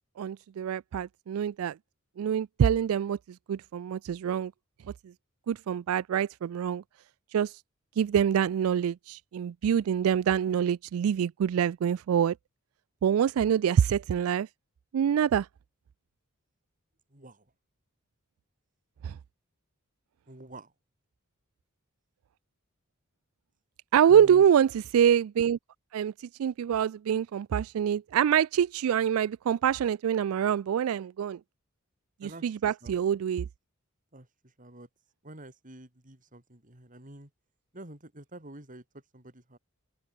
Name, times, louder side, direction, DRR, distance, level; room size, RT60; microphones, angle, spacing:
voice 1, 0.2-1.8 2.2-3.2 3.5-4.5 5.5-6.8 7.3-7.6 8.0-12.4 13.0-14.5 14.9-15.5 19.0-19.2 23.9-25.6 25.9-31.4 32.2-33.5, right 8 dB, 75° right, 0.3 m, -25 dB
voice 2, 17.1-17.5 20.3-20.7 24.1-24.5 32.2-33.0 34.1-34.9 35.2-37.3 37.7-39.6, right 1 dB, 40° right, 4.6 m, -48 dB
open air
head